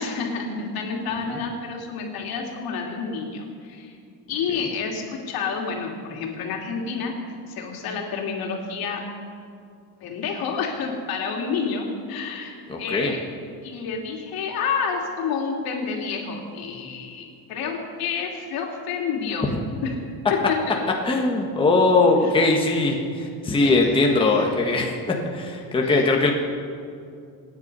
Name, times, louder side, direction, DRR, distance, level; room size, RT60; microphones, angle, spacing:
voice 1, 0.0-4.0 4.3-9.0 10.0-13.2 13.6-19.5 19.8-20.0 20.3-20.7 22.2-22.6 23.6-24.4 25.8-26.0, left 5 dB, 60° left, 1 dB, 3.0 m, -29 dB
voice 2, 12.7-13.1 19.5-19.6 21.0-26.3, left 3 dB, 15° left, 0 dB, 1.5 m, -21 dB
27.0 x 9.8 x 5.5 m, 2.4 s
cardioid pair, 145°, 40 cm